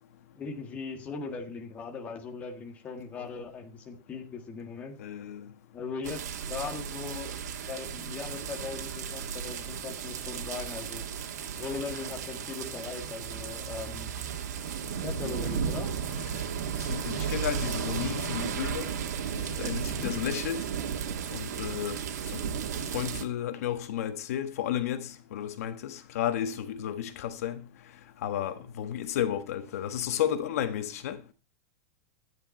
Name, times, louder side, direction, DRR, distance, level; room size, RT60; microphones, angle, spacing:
voice 1, 0.3-5.0 5.7-7.3 7.7-11.0 11.5-14.1 15.0-15.9 19.9-20.2, left 5 dB, 15° left, 1.7 m, -39 dB
voice 2, 5.0-5.5 15.4-15.5 16.2-16.3 16.8-18.9 19.4-20.6 21.3-22.0 22.3-22.4 22.9-27.6 28.2-31.2, left 10 dB, 60° left, 1.4 m, -32 dB
sound 1, 6.0-23.2, right 7 dB, 85° right, 2.3 m, -34 dB
12.5 x 9.8 x 4.3 m
supercardioid pair, 175°, 9 cm